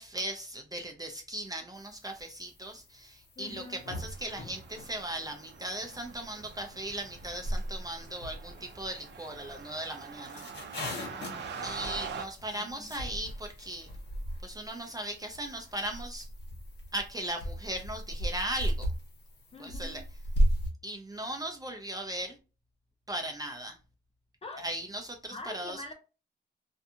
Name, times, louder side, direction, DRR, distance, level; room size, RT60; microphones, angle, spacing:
voice 1, 0.0-10.5 11.6-13.9 14.4-16.3 16.9-18.9 19.6-20.0 20.8-22.4 23.1-23.8 24.6-25.9, right 1 dB, 20° right, 0.4 m, -38 dB
sound 1, 1.7-20.7, right 1 dB, 70° left, 0.9 m, -37 dB
voice 2, 3.4-3.8 11.1-11.6 12.5-12.9 19.5-20.0 24.4-24.6 25.3-25.9, left 2 dB, 35° left, 0.7 m, -45 dB
sound 2, 3.6-12.3, right 5 dB, 75° right, 0.5 m, -44 dB
2.6 x 2.3 x 2.6 m
cardioid pair, 100°, 19 cm